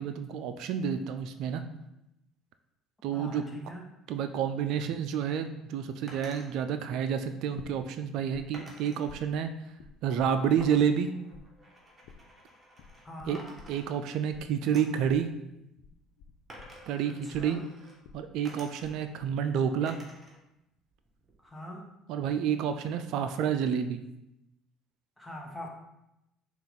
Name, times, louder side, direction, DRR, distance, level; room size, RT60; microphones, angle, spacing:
voice 1, 0.0-1.6 3.0-3.4 4.1-9.5 10.0-11.1 13.2-13.4 13.7-15.3 16.9-17.6 18.1-20.0 22.1-24.0, right 8 dB, 70° right, 8 dB, 0.3 m, -29 dB
voice 2, 3.1-3.8 13.0-13.4 17.2-17.6 21.4-21.9 25.2-25.7, left 1 dB, 10° left, 0 dB, 1.1 m, -42 dB
sound 1, 6.1-6.5 8.5-9.1 10.6-13.1 13.3-14.3 14.7-15.1 16.5-18.0 18.4-19.2 19.9-20.4 20.7-21.5, right 1 dB, 20° right, 1.2 m, -51 dB
sound 2, 7.6-8.4 8.7-11.0 11.3-18.9 19.2-19.7, left 6 dB, 70° left, 0.4 m, -51 dB
5.7 x 2.4 x 3.8 m, 0.88 s
hypercardioid pair, 70°, 0 cm